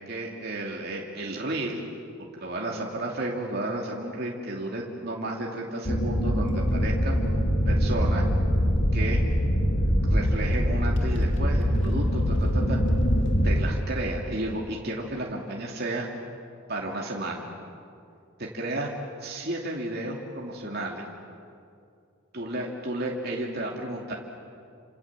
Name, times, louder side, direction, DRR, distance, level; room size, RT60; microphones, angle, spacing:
voice 1, 0.0-1.8 2.4-7.2 7.6-8.2 8.9-9.2 10.1-12.8 13.4-16.1 16.7-17.5 18.4-18.9 19.2-21.1 22.3-24.1, right 1 dB, 50° right, -2 dB, 2.8 m, -32 dB
sound 1, 5.8-13.6, equal, 60° left, 2.9 m, -23 dB
29.5 x 27.0 x 7.5 m, 2.4 s
head